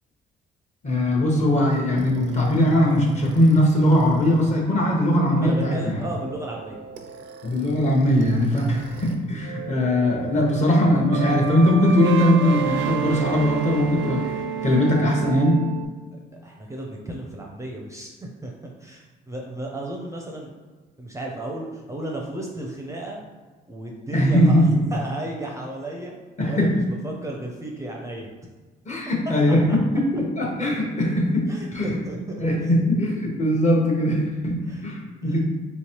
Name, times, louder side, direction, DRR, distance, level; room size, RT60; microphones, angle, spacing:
voice 1, 0.8-6.0 7.4-14.4 14.6-15.7 24.1-24.8 26.4-26.9 28.9-32.0 32.4-35.5, left 1 dB, 35° left, -1 dB, 0.9 m, -20 dB
sound 1, 2.0-9.1 9.4-15.8, right 9 dB, 80° right, 0.5 m, -33 dB
voice 2, 5.3-6.8 16.4-20.5 21.0-23.2 23.7-24.6 24.9-26.2 26.4-28.3 29.7-29.8 31.5-32.7 34.6-34.8 35.2-35.4, right 1 dB, 15° right, -1 dB, 0.5 m, -34 dB
3.3 x 3.0 x 2.9 m, 1.3 s
cardioid pair, 90°, 20 cm